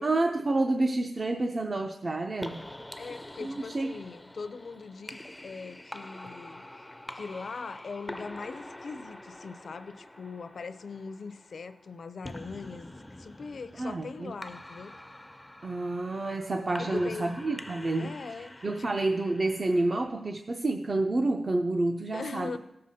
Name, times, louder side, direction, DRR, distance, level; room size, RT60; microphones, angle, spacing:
voice 1, 0.0-2.7 3.4-4.0 13.8-14.4 15.6-22.6, right 2 dB, 45° right, 4 dB, 0.5 m, -29 dB
sound 1, 2.4-20.1, left 1 dB, 15° left, 0.4 m, -46 dB
voice 2, 3.0-6.6 7.1-14.9 16.8-17.3 18.0-18.9 22.1-22.6, left 4 dB, 70° left, 12 dB, 0.5 m, -41 dB
15.5 x 6.6 x 2.7 m, 0.89 s
cardioid pair, 70°, 0 cm